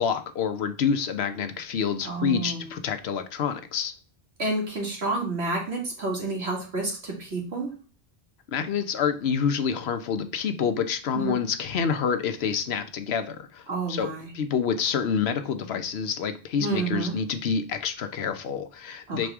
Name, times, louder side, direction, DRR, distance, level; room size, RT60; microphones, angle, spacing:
voice 1, 0.0-3.9 8.5-19.3, left 7 dB, 80° left, 1.0 m, -27 dB
voice 2, 2.0-2.6 4.4-7.7 11.1-11.3 13.7-14.3 16.6-17.2 19.1-19.3, right 3 dB, 85° right, 2.3 m, -29 dB
6.3 x 4.3 x 3.4 m
omnidirectional pair, 1.1 m